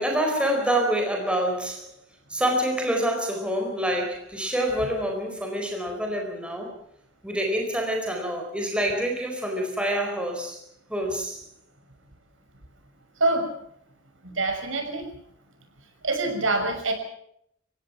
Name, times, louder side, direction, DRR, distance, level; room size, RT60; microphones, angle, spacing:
voice 1, 0.0-1.9 2.3-6.7 7.2-10.6 10.9-11.4, right 1 dB, 5° right, 1 dB, 4.4 m, -26 dB
voice 2, 14.2-15.0 16.0-16.9, right 2 dB, 85° right, 5 dB, 6.1 m, -25 dB
29.0 x 16.5 x 6.1 m, 0.70 s
head